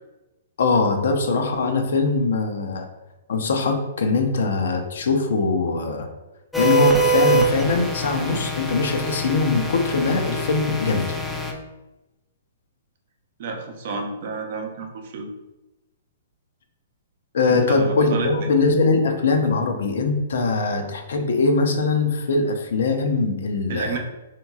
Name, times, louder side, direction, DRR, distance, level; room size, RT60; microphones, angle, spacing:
voice 1, 0.6-2.9 3.3-6.1 6.6-11.2 17.3-24.0, left 3 dB, 75° left, 5 dB, 0.5 m, -22 dB
sound 1, 6.5-11.5, right 2 dB, 5° left, 0.4 m, -24 dB
voice 2, 13.4-15.3 17.5-18.5 23.7-24.0, right 4 dB, 55° right, 3 dB, 0.6 m, -30 dB
2.9 x 2.8 x 2.3 m, 1.0 s
hypercardioid pair, 140°, 0 cm